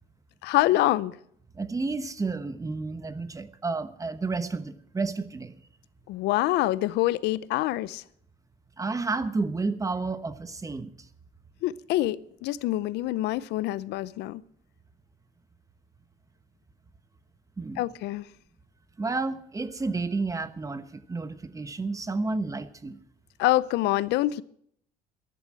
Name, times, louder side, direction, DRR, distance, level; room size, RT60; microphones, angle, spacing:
voice 1, 0.4-1.2 6.1-8.0 11.6-14.4 17.8-18.2 23.4-24.4, left 16 dB, 85° left, 0.7 m, -26 dB
voice 2, 1.5-5.5 8.8-10.9 17.6-17.8 19.0-23.0, right 3 dB, 20° right, 1.1 m, -31 dB
14.0 x 11.0 x 7.6 m
cardioid pair, 110°, 17 cm